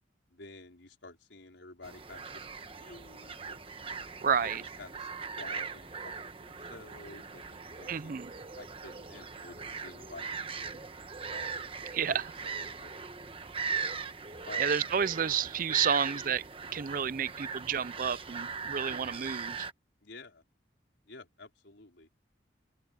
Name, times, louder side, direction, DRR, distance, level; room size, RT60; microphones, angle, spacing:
voice 1, 0.3-3.8 4.4-4.5 4.8-5.1 5.4-8.2 8.5-11.0 11.3-13.2 14.4-14.8 20.0-20.4 21.1-22.2, left 2 dB, 70° left, 4.8 m, -51 dB
sound 1, 1.8-19.7, right 5 dB, 30° right, 1.2 m, -39 dB
voice 2, 4.2-4.6 7.9-8.3 11.9-12.2 14.6-16.4 16.7-19.6, right 7 dB, 45° right, 0.4 m, -30 dB
open air
head